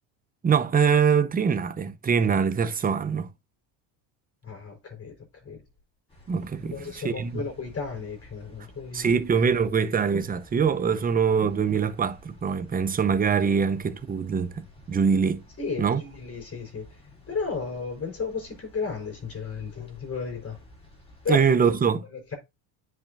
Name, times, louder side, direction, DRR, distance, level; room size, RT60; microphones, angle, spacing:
voice 1, 0.4-3.3 6.3-7.4 8.9-15.4 15.8-16.0 21.3-22.0, right 6 dB, 20° right, 0.7 m, -23 dB
voice 2, 4.4-5.6 6.6-9.2 15.6-17.0 17.3-20.6 21.2-21.4 22.1-22.3, left 4 dB, 30° left, 4.3 m, -34 dB
sound 1, 6.1-21.8, left 1 dB, 15° left, 4.0 m, -53 dB
9.8 x 5.9 x 2.6 m
supercardioid pair, 105°, 46 cm